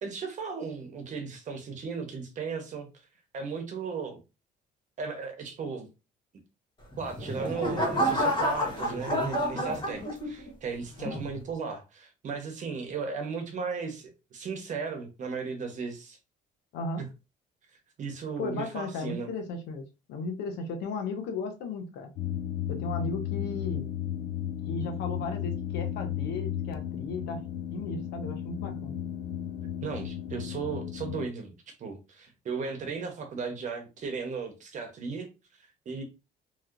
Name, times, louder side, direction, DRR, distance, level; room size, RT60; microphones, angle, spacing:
voice 1, 0.0-2.9 3.3-4.2 5.0-5.9 7.0-16.2 17.0-17.1 18.0-19.3 29.8-31.5 31.8-35.3 35.8-36.0, right 5 dB, 45° right, 5 dB, 1.0 m, -36 dB
sound 1, 6.9-10.5 11.0-11.4, equal, 30° left, 1.2 m, -29 dB
voice 2, 18.4-22.1 22.7-23.9 24.7-27.4 27.7-28.9, left 3 dB, 80° left, 4 dB, 0.9 m, -35 dB
sound 2, 22.2-31.3, left 11 dB, 65° left, 0.5 m, -34 dB
3.1 x 2.8 x 2.5 m, 0.28 s
cardioid pair, 110°, 17 cm